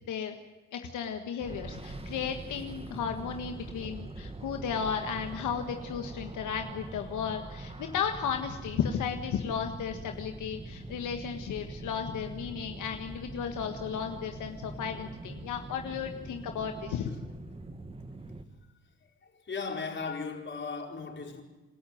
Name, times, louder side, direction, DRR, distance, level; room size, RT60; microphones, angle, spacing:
voice 1, 0.7-17.1, left 7 dB, 80° left, 1.7 m, -34 dB
sound 1, 1.4-18.4, right 2 dB, 20° right, 1.9 m, -43 dB
voice 2, 19.2-21.4, left 4 dB, 40° left, 4.5 m, -37 dB
27.5 x 13.0 x 9.4 m
cardioid pair, 90°, 30 cm